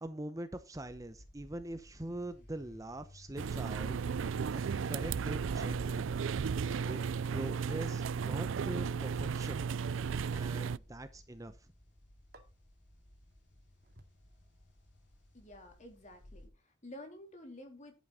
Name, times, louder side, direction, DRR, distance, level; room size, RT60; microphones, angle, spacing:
voice 1, 0.0-4.6 4.9-6.1 6.8-7.0 7.3-9.6 10.3-11.5, right 1 dB, 15° right, 10 dB, 0.8 m, -43 dB
sound 1, 0.8-16.5, left 1 dB, 65° left, 5.5 m, -60 dB
sound 2, 3.4-10.8, right 6 dB, 80° right, 0.4 m, -34 dB
sound 3, 5.5-7.2 8.6-8.7 10.3-10.4 12.3-12.4 13.8-14.0, right 1 dB, 50° right, 2.5 m, -51 dB
voice 2, 15.3-17.9, left 1 dB, 35° left, 4 dB, 3.6 m, -51 dB
11.0 x 8.3 x 4.2 m, 0.30 s
head